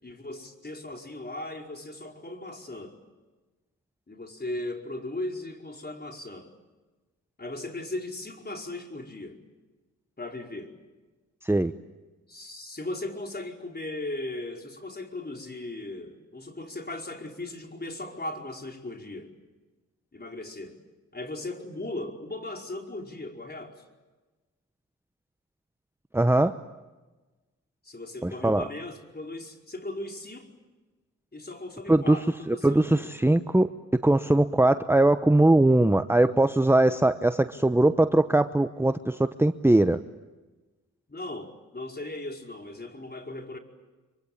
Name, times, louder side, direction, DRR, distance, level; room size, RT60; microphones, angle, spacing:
voice 1, 0.0-3.0 4.1-6.5 7.4-9.4 10.2-10.7 12.3-19.3 20.1-20.8 21.1-23.8 27.8-30.5 31.3-33.1 41.1-43.6, left 2 dB, 30° left, 2 dB, 5.0 m, -37 dB
voice 2, 26.1-26.6 28.2-28.6 31.9-32.2 32.5-33.7 34.0-40.0, right 1 dB, 5° right, 10 dB, 0.9 m, -21 dB
25.5 x 24.5 x 8.8 m, 1.2 s
supercardioid pair, 45°, 32 cm